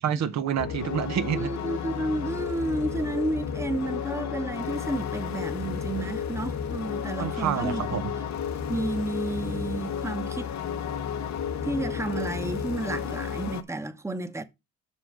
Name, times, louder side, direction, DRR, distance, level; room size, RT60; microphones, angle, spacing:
voice 1, 0.0-1.5 7.2-8.0, right 9 dB, 65° right, 0.8 m, -28 dB
sound 1, 0.6-13.6, left 7 dB, 65° left, 1.0 m, -32 dB
voice 2, 1.3-8.0 8.7-10.5 11.6-14.4, right 2 dB, 10° right, 0.9 m, -31 dB
6.2 x 5.5 x 6.2 m
cardioid pair, 90°, 30 cm